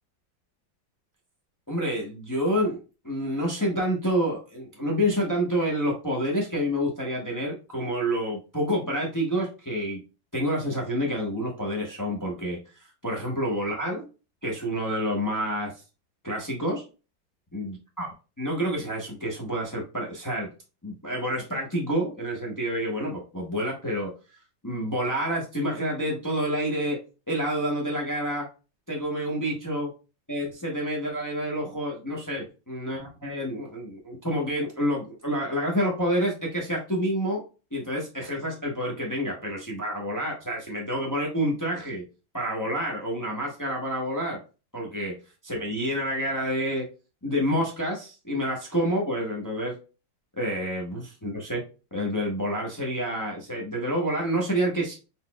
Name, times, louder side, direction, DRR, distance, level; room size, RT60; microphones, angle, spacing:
voice 1, 1.7-10.0 10.3-14.0 14.4-15.8 16.2-16.8 17.5-18.1 18.4-20.5 20.8-24.1 24.6-27.0 27.3-28.5 28.9-29.9 30.3-37.4 37.7-42.0 42.3-44.4 44.7-46.9 47.2-49.8 50.4-51.6 51.9-54.9, equal, 30° left, -2 dB, 0.3 m, -28 dB
4.1 x 4.0 x 2.2 m, 0.32 s
omnidirectional pair, 2.1 m